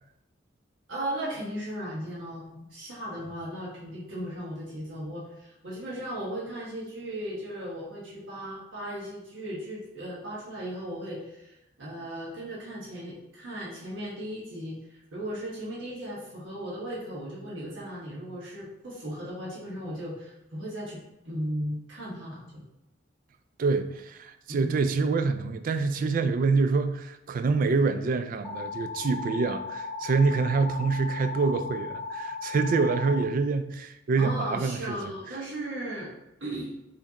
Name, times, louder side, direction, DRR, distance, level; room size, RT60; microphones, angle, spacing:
voice 1, 0.9-21.0 21.2-22.6 24.5-24.7 34.2-36.1 36.4-36.7, equal, 85° right, -6 dB, 1.2 m, -36 dB
voice 2, 23.6-35.0, right 4 dB, 45° right, 10 dB, 0.3 m, -26 dB
sound 1, 28.4-33.2, left 4 dB, 10° left, 0.8 m, -36 dB
4.6 x 3.3 x 2.8 m, 0.90 s
head